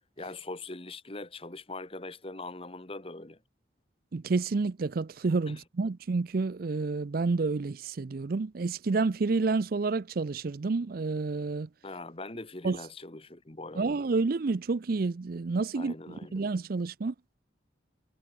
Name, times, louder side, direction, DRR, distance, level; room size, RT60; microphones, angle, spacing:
voice 1, 0.2-3.4 5.5-5.6 11.8-13.9 15.7-16.4, left 2 dB, 30° left, 1.4 m, -42 dB
voice 2, 4.1-11.7 12.6-12.8 13.8-15.9 16.3-17.1, right 3 dB, 50° right, 0.5 m, -29 dB
head